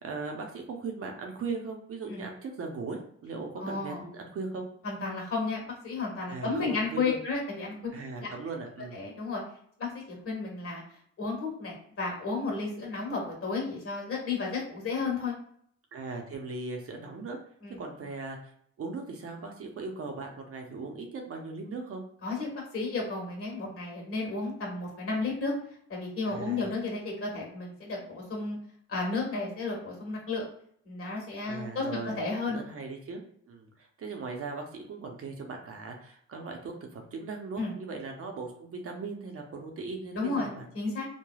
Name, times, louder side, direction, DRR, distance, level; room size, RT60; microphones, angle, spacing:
voice 1, 0.0-4.7 6.3-7.2 7.9-9.0 15.9-17.4 17.8-18.5 18.8-22.0 26.3-26.7 31.5-32.2 32.5-40.7, right 4 dB, 50° right, 3 dB, 0.7 m, -38 dB
voice 2, 3.6-4.0 4.8-7.7 8.2-8.3 8.9-9.4 9.8-9.9 10.2-10.8 11.2-15.3 17.6-17.8 22.2-25.5 25.9-28.6 28.9-30.4 30.8-31.8 32.2-32.6 37.6-37.7 40.1-41.1, left 3 dB, 45° left, -1 dB, 1.4 m, -32 dB
3.2 x 2.2 x 2.3 m, 0.63 s
cardioid pair, 90°, 30 cm